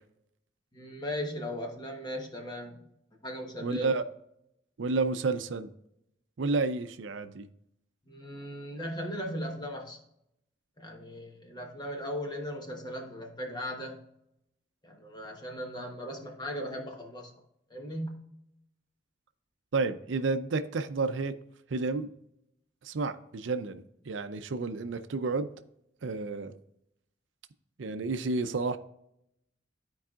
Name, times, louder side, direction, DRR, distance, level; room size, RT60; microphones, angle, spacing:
voice 1, 0.7-2.8 3.2-3.9 8.1-10.0 10.8-14.0 14.8-17.3 17.7-18.2, equal, 20° left, 2 dB, 1.1 m, -37 dB
voice 2, 3.6-4.0 4.8-5.7 6.4-7.5 19.7-21.3 21.7-22.1 22.8-25.5 26.0-26.6 27.8-28.8, right 3 dB, 75° right, 10 dB, 0.5 m, -30 dB
12.5 x 4.7 x 2.4 m, 0.78 s
head